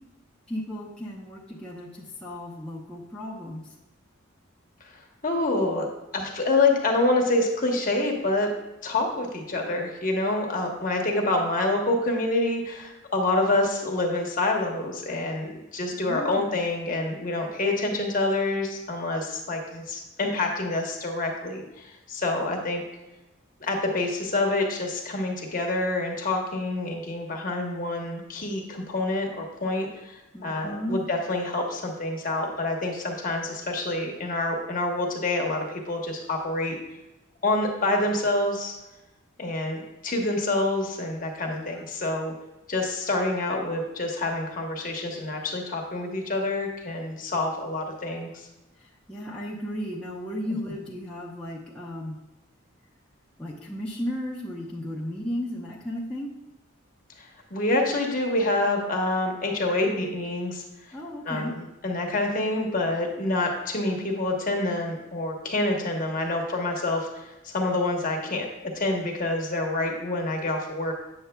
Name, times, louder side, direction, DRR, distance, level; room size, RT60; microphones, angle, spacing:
voice 1, 0.5-3.6 15.9-16.5 30.3-31.0 41.5-41.9 49.1-52.2 53.4-56.3 60.9-61.5, equal, 5° left, -6 dB, 0.7 m, -34 dB
voice 2, 5.2-5.9 6.1-8.5 8.8-22.8 23.6-36.8 37.4-38.7 39.4-42.3 42.7-48.4 57.2-60.9 61.2-68.5 68.7-70.9, left 2 dB, 40° left, 1 dB, 1.0 m, -27 dB
8.5 x 6.8 x 2.2 m, 1.0 s
head